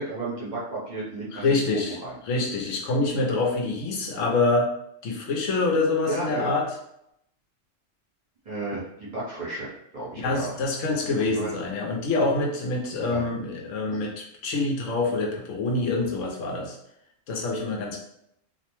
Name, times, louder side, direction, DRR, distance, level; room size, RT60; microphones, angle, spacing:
voice 1, 0.0-2.1 6.0-6.5 8.4-10.5 11.2-11.5 13.0-13.2 13.9-14.0, right 2 dB, 40° right, -8 dB, 0.9 m, -33 dB
voice 2, 1.3-2.0 2.3-4.7 5.0-6.7 10.1-16.8 17.3-18.0, left 3 dB, 85° left, -1 dB, 1.0 m, -26 dB
2.6 x 2.1 x 3.0 m, 0.76 s
omnidirectional pair, 1.3 m